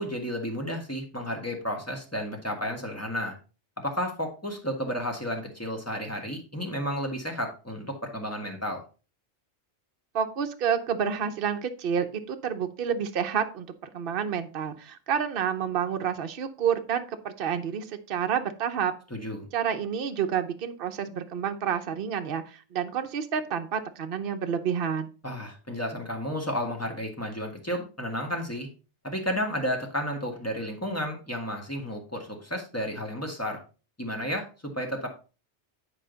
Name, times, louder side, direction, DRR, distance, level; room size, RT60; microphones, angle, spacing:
voice 1, 0.0-3.4 3.8-8.8 19.1-19.5 25.2-28.7 29.0-33.6 34.0-35.1, equal, 15° left, 2 dB, 1.6 m, -32 dB
voice 2, 10.1-13.7 13.9-18.9 19.5-25.1, right 8 dB, 55° right, 6 dB, 0.9 m, -29 dB
9.8 x 5.0 x 3.9 m, 0.34 s
omnidirectional pair, 1.2 m